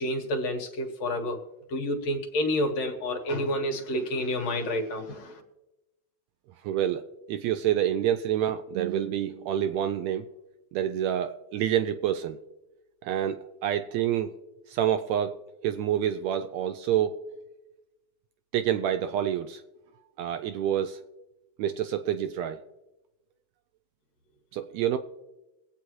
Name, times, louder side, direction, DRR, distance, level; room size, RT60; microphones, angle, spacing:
voice 1, 0.0-1.4 1.7-5.4, left 1 dB, 65° left, 3 dB, 2.5 m, -29 dB
voice 2, 6.6-7.0 7.3-10.3 10.7-12.4 13.0-14.3 14.7-15.4 15.6-17.2 18.5-19.6 20.2-21.0 21.6-22.6 24.5-25.0, right 10 dB, 80° right, 9 dB, 1.6 m, -27 dB
22.0 x 8.4 x 3.1 m, 1.0 s
omnidirectional pair, 3.4 m